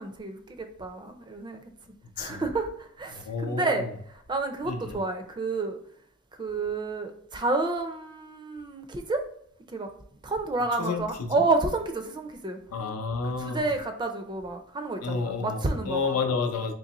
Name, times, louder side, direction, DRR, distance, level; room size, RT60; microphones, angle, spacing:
voice 1, 0.0-1.6 2.2-5.8 6.4-9.2 9.7-9.9 10.2-12.6 13.2-16.2, right 3 dB, 20° right, 6 dB, 0.4 m, -30 dB
voice 2, 3.1-3.9 4.6-5.0 10.8-11.4 12.7-13.7 15.0-16.7, left 4 dB, 85° left, 5 dB, 0.6 m, -30 dB
3.8 x 2.9 x 2.9 m, 0.66 s
head